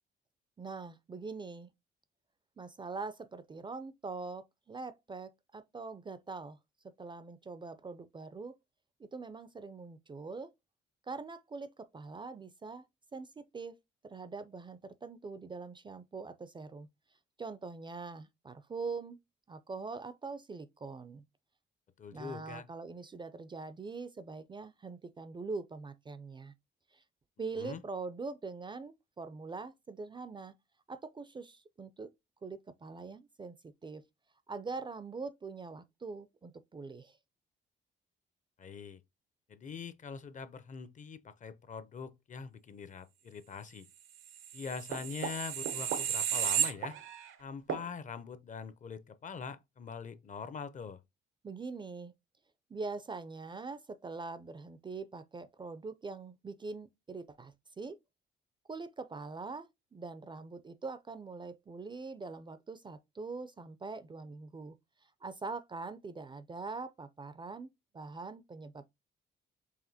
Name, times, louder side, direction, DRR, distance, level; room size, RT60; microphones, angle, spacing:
voice 1, 0.6-1.7 2.6-6.6 6.8-8.6 9.0-10.5 11.1-12.9 13.1-13.7 14.0-16.9 17.4-19.2 19.5-21.2 22.1-26.5 26.9-27.0 27.4-30.5 30.9-32.1 32.4-34.0 34.5-37.2 51.4-52.1 52.7-58.0 58.7-64.8 65.0-67.7 67.9-68.9, right 4 dB, 25° right, 0.4 m, -43 dB
voice 2, 22.0-22.7 27.6-27.8 38.6-39.0 39.5-43.9 44.5-47.0 47.4-51.0, left 6 dB, 40° left, 0.5 m, -43 dB
sound 1, 44.4-47.3 47.7-47.9, right 9 dB, 80° right, 0.7 m, -33 dB
4.9 x 2.9 x 2.7 m
cardioid pair, 90°, 20 cm